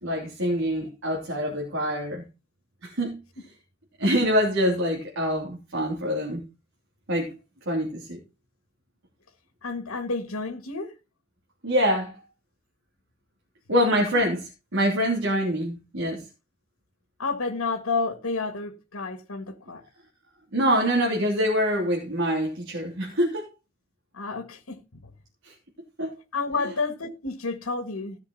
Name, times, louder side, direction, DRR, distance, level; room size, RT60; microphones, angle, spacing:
voice 1, 0.0-2.2 2.8-3.2 4.0-6.4 7.1-7.3 7.7-8.2 11.6-12.1 13.7-16.2 20.5-23.5 26.0-26.1, equal, 65° right, 3.3 m, -25 dB
voice 2, 9.6-10.9 13.8-14.2 17.2-19.8 24.1-24.8 26.3-28.2, left 3 dB, 80° left, 1.6 m, -30 dB
16.0 x 6.5 x 4.1 m
head